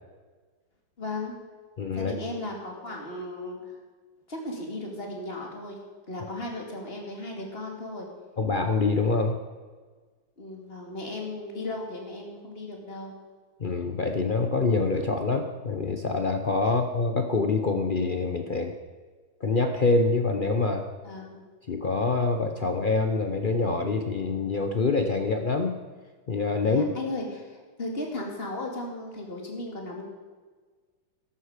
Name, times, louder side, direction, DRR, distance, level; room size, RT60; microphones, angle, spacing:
voice 1, 1.0-1.3 1.9-3.8 4.3-5.8 6.1-8.1 10.4-13.1 16.6-16.7 21.0-21.4 26.6-30.1, left 2 dB, 30° left, 0 dB, 2.6 m, -36 dB
voice 2, 1.8-2.1 8.4-9.4 13.6-18.7 19.4-20.8 21.7-25.8 26.3-26.8, left 3 dB, 70° left, 5 dB, 0.4 m, -25 dB
14.0 x 11.5 x 5.0 m, 1.4 s
omnidirectional pair, 2.2 m